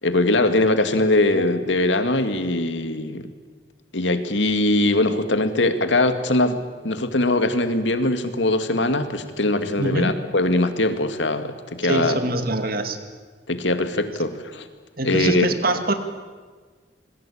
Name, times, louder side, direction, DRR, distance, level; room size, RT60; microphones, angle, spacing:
voice 1, 0.0-3.3 3.9-6.6 6.8-12.2 13.5-14.7 15.0-15.5, left 2 dB, 80° left, 9 dB, 2.3 m, -21 dB
voice 2, 9.8-10.2 11.8-13.0 15.0-15.9, right 2 dB, 55° right, 8 dB, 2.4 m, -24 dB
27.0 x 21.5 x 8.7 m, 1.5 s
head